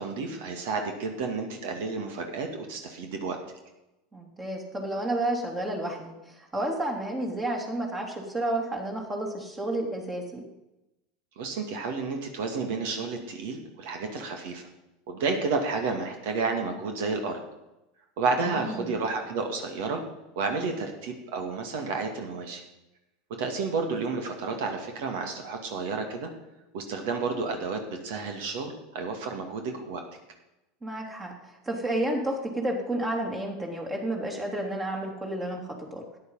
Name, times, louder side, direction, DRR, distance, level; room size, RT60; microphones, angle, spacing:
voice 1, 0.0-3.4 11.4-14.7 15.1-17.4 18.2-20.0 20.4-22.6 23.4-26.3 26.7-30.0, right 4 dB, 65° right, 4 dB, 2.1 m, -31 dB
voice 2, 4.1-10.4 18.4-18.9 30.8-36.0, right 1 dB, 20° right, 1 dB, 3.1 m, -31 dB
13.5 x 9.8 x 5.6 m, 0.96 s
hypercardioid pair, 85°, 0 cm